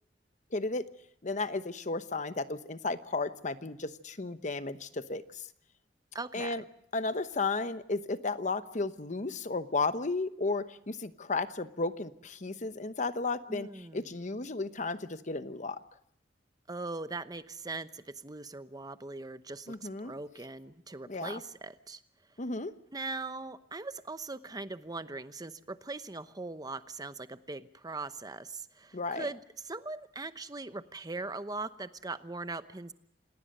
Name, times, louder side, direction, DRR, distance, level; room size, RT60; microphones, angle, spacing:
voice 1, 0.5-0.8 1.2-5.5 6.3-6.6 6.9-15.8 19.7-20.1 21.1-21.4 22.4-22.7 28.9-29.3, left 3 dB, 45° left, 12 dB, 1.0 m, -34 dB
voice 2, 6.1-6.6 13.5-14.1 16.7-22.0 22.9-32.9, right 3 dB, 20° right, 12 dB, 0.9 m, -40 dB
27.5 x 19.0 x 6.6 m, 0.72 s
head